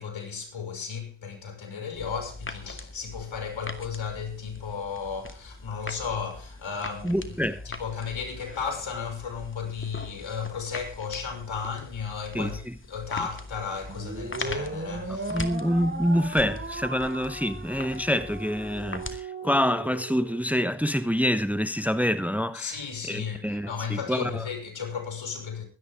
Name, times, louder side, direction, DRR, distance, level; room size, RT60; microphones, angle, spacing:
voice 1, 0.0-12.6 12.9-15.4 22.5-25.6, left 6 dB, 75° left, 6.3 m, -34 dB
sound 1, 1.9-19.2, left 2 dB, 25° left, 2.4 m, -42 dB
voice 2, 7.0-7.6 12.3-12.7 15.3-22.7 23.1-24.5, equal, 5° right, 1.1 m, -26 dB
sound 2, 13.9-20.4, right 2 dB, 25° right, 7.0 m, -37 dB
22.5 x 10.5 x 3.7 m
cardioid pair, 50°, 46 cm